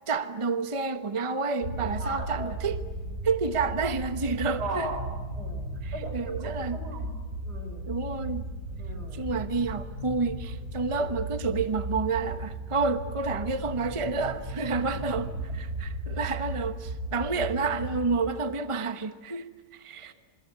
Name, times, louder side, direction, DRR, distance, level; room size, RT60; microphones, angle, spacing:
voice 1, 0.1-2.8 3.2-4.9 5.8-6.8 7.9-8.5 9.1-20.1, right 4 dB, 20° right, 1.0 m, -29 dB
sound 1, 1.6-18.1, right 2 dB, 45° right, 6.7 m, -36 dB
voice 2, 2.0-2.6 4.6-5.0 5.3-7.1 7.4-7.9 8.8-9.2 20.0-20.1, right 2 dB, 65° right, 5.6 m, -38 dB
26.0 x 25.5 x 8.3 m
omnidirectional pair, 1.9 m